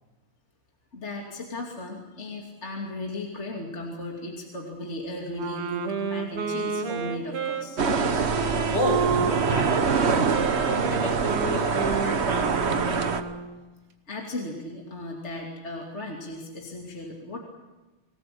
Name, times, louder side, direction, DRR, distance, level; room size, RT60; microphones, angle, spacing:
voice 1, 0.9-7.8 14.1-17.4, left 1 dB, 30° left, 0 dB, 2.9 m, -36 dB
Wind instrument woodwind instrument, 5.3-13.6, right 5 dB, 80° right, 2.7 m, -30 dB
sound 1, 7.8-13.2, right 5 dB, 40° right, 1.0 m, -25 dB
voice 2, 8.7-10.2 10.5-13.1, left 2 dB, 55° left, 2 dB, 6.2 m, -32 dB
26.0 x 18.5 x 8.5 m, 1.2 s
omnidirectional pair, 2.4 m